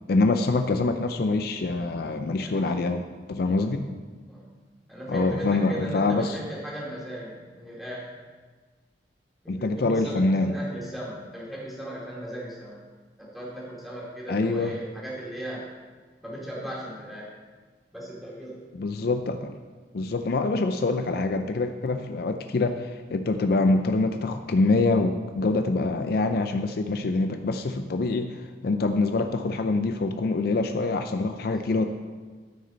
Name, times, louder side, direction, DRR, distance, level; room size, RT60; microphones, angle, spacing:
voice 1, 0.1-3.0 3.3-3.9 5.1-6.4 9.5-10.6 14.3-14.7 18.8-19.5 19.9-31.9, left 3 dB, 60° left, 7 dB, 0.4 m, -25 dB
voice 2, 2.4-2.7 3.4-3.7 4.3-4.5 4.9-8.1 9.4-12.8 13.2-15.7 16.2-17.3 17.9-18.6 21.9-22.1 31.4-31.8, right 1 dB, ahead, -6 dB, 2.5 m, -37 dB
13.0 x 6.3 x 4.0 m, 1.4 s
head